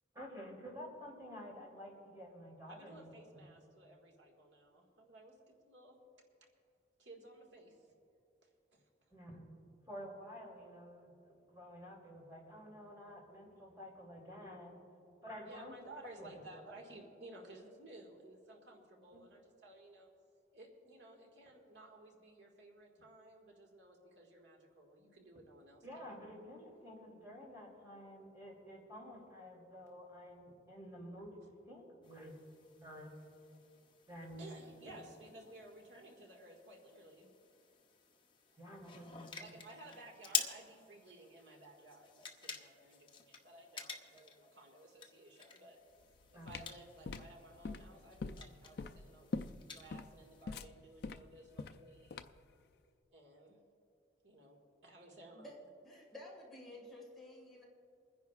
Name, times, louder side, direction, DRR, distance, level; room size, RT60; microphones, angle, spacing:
voice 1, 0.1-3.4 9.1-9.4 9.9-14.8 15.2-15.7 16.2-16.4 25.8-31.3 31.7-32.3 32.8-33.1 34.1-34.4 38.6-39.5 46.3-46.5, equal, 20° right, -3 dB, 3.0 m, -51 dB
voice 2, 2.7-5.4 5.6-6.0 7.0-7.8 8.4-8.9 15.4-20.1 20.5-26.1 34.4-37.3 38.5-38.6 39.4-45.8 46.3-52.3 53.1-53.6 54.2-55.7, right 2 dB, 85° right, -1 dB, 1.8 m, -56 dB
sound 1, 32.0-50.5, left 7 dB, 25° left, 0.8 m, -48 dB
sound 2, 46.0-52.5, left 4 dB, 60° left, 0.4 m, -44 dB
voice 3, 55.8-57.6, left 1 dB, ahead, -5 dB, 2.0 m, -52 dB
29.0 x 10.5 x 2.4 m, 2.6 s
head